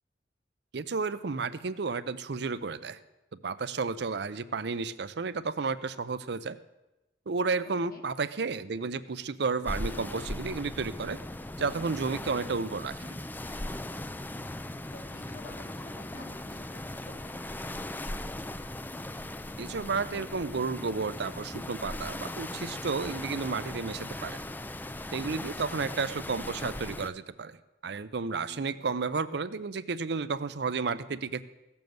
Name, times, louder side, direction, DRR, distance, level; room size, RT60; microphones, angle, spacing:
voice 1, 0.7-3.0 3.4-6.6 7.3-11.2 11.6-13.0 19.6-24.4 25.1-27.6 27.8-31.4, right 4 dB, 65° right, 14 dB, 0.6 m, -32 dB
sound 1, 9.7-27.1, left 1 dB, 10° left, 0.4 m, -38 dB
voice 2, 13.0-13.4 14.9-16.8 17.1-17.6 25.6-25.7 28.5-28.9, left 2 dB, 55° left, 2 dB, 1.9 m, -50 dB
16.0 x 7.0 x 7.9 m, 1.0 s
head